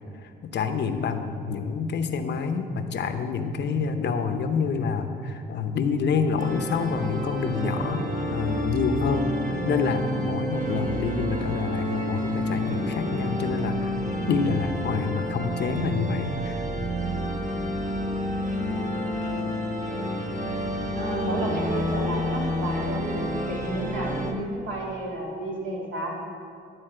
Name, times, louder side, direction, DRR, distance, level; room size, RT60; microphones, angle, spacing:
voice 1, 0.2-13.9 14.3-16.6, left 5 dB, 60° left, 7 dB, 0.8 m, -27 dB
sound 1, 6.4-24.3, equal, 40° right, 1.2 m, -29 dB
voice 2, 20.9-26.1, right 1 dB, 70° right, -4 dB, 2.6 m, -31 dB
12.0 x 4.1 x 7.7 m, 2.4 s
cardioid pair, 90°, 20 cm